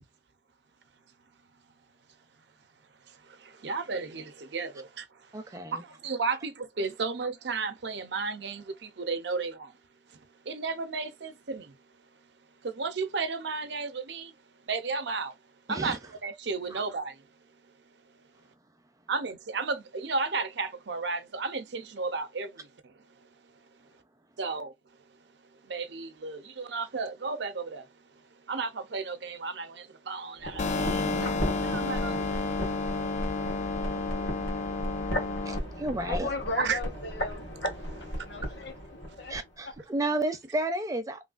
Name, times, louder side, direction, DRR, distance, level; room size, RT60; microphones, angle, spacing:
voice 1, 3.1-5.1 5.7-9.8 10.4-11.7 12.6-14.3 14.7-15.4 15.7-17.2 19.1-22.9 24.4-24.7 25.6-27.9 28.5-32.7 33.0-33.6 34.8-35.2 36.6-36.8 37.9-38.1, right 4 dB, 70° right, 0.6 m, -34 dB
voice 2, 5.3-5.8 15.7-16.0 16.7-16.8 35.4-36.3 39.3-41.2, right 1 dB, 20° right, 0.5 m, -32 dB
sound 1, 30.4-39.5 39.7-39.8, equal, 90° left, 1.5 m, -35 dB
sound 2, 30.6-35.6, left 4 dB, 40° left, 0.4 m, -31 dB
voice 3, 35.9-37.5 38.0-39.3 39.6-39.7, left 3 dB, 65° left, 0.9 m, -37 dB
3.2 x 2.3 x 2.4 m
head